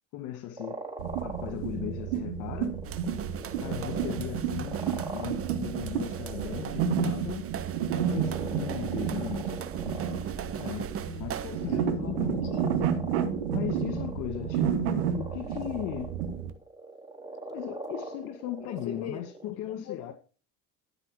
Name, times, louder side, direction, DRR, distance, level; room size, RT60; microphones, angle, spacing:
voice 1, 0.1-0.8 1.2-2.7 3.6-4.8 5.1-7.4 7.9-9.6 10.6-10.9 11.2-12.4 13.5-16.2 17.5-20.1, left 13 dB, 65° left, 1.8 m, -37 dB
sound 1, 0.6-19.5, right 2 dB, 10° right, 4.9 m, -42 dB
sound 2, 1.0-16.5, right 8 dB, 85° right, 1.9 m, -31 dB
sound 3, 2.8-11.8, right 8 dB, 45° right, 1.1 m, -39 dB
voice 2, 11.7-13.0 14.2-14.8 18.6-20.1, left 7 dB, 50° left, 5.6 m, -43 dB
13.5 x 5.8 x 4.9 m
hypercardioid pair, 75°, 33 cm